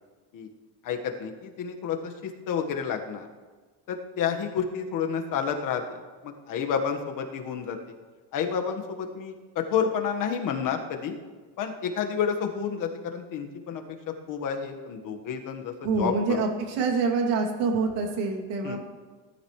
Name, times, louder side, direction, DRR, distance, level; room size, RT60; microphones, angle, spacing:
voice 1, 0.8-3.3 3.9-7.8 8.3-11.2 11.6-16.4 18.6-18.8, left 7 dB, 55° left, 4 dB, 1.5 m, -30 dB
voice 2, 15.8-18.8, right 4 dB, 85° right, 1 dB, 2.7 m, -26 dB
18.0 x 13.0 x 3.2 m, 1.4 s
cardioid pair, 145°, 39 cm